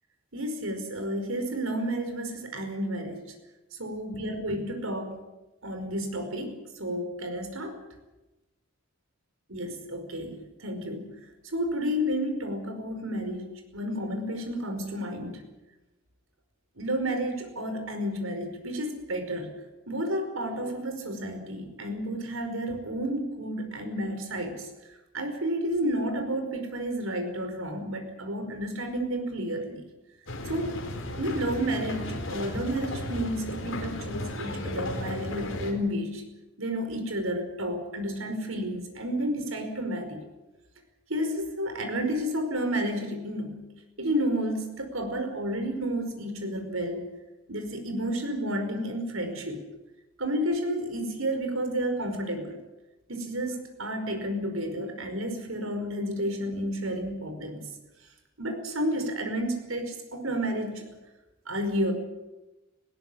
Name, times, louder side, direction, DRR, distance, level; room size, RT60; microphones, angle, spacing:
voice 1, 0.3-3.3 3.8-5.2 5.6-7.7 9.5-11.2 11.4-15.4 16.8-19.5 19.9-24.6 25.1-29.8 30.4-30.8 31.1-36.2 36.6-40.2 41.1-47.0 47.5-49.6 50.2-52.6 53.1-57.7 58.4-60.9 61.5-61.9, equal, 85° right, 6 dB, 5.1 m, -31 dB
sound 1, 30.3-35.7, left 1 dB, 70° left, 4.2 m, -35 dB
20.0 x 17.5 x 10.0 m, 1.0 s
head